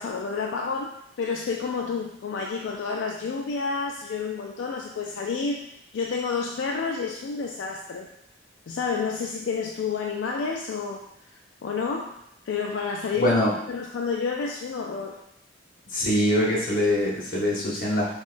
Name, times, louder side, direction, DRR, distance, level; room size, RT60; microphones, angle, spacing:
voice 1, 0.0-5.6 5.9-8.1 8.7-13.4 13.7-15.2, left 5 dB, 80° left, 0 dB, 0.3 m, -30 dB
voice 2, 13.2-13.5 15.9-18.2, left 1 dB, 50° left, -4 dB, 1.1 m, -23 dB
5.5 x 2.3 x 2.5 m, 0.78 s
head